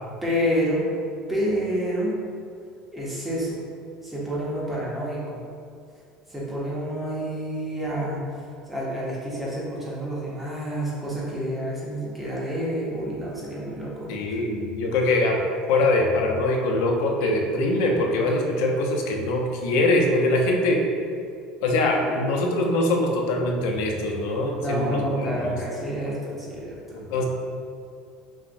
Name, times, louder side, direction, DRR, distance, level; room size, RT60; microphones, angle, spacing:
voice 1, 0.2-0.8 1.3-2.2 2.9-3.6 4.0-5.5 6.3-8.2 8.7-14.1 22.0-22.2 24.6-26.8, equal, 5° right, -7 dB, 0.6 m, -28 dB
voice 2, 14.1-15.4 15.7-20.8 21.6-25.6 26.9-27.2, left 2 dB, 85° left, 1 dB, 0.5 m, -23 dB
5.7 x 2.0 x 2.5 m, 2.3 s
cardioid pair, 180°, 2 cm